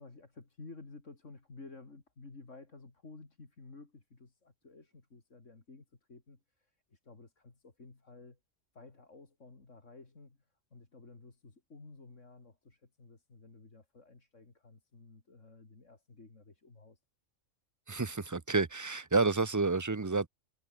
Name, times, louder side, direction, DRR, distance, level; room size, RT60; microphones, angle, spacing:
voice 1, 0.0-8.4 8.7-17.0, left 3 dB, 75° left, 3.6 m, -54 dB
voice 2, 17.9-20.3, right 3 dB, 25° right, 0.4 m, -30 dB
omnidirectional pair, 1.3 m